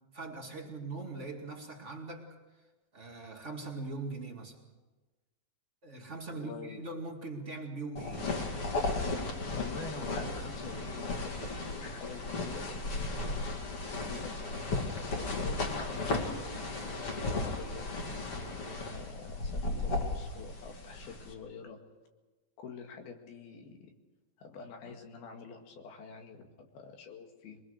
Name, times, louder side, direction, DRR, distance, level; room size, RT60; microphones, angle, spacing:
voice 1, 0.1-2.3 2.9-4.6 5.8-8.3, right 3 dB, 25° right, 1 dB, 1.8 m, -41 dB
voice 2, 6.3-6.8 9.5-14.3 15.0-17.9 18.5-21.8 22.6-23.9 24.4-27.6, left 5 dB, 80° left, 3 dB, 3.9 m, -47 dB
sound 1, 8.0-21.3, left 2 dB, 40° left, 3.2 m, -35 dB
23.5 x 21.5 x 6.5 m, 1.2 s
omnidirectional pair, 4.3 m